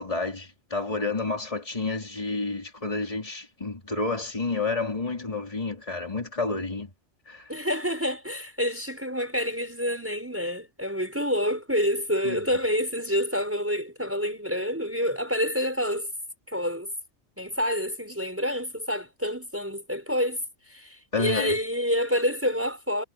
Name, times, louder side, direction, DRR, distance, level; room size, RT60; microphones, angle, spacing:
voice 1, 0.0-6.9 7.3-7.5 12.2-12.4 21.1-21.5, left 3 dB, 25° left, 3.3 m, -30 dB
voice 2, 7.5-16.1 16.5-16.9 17.4-23.0, equal, 10° right, 5.4 m, -28 dB
omnidirectional pair, 1.3 m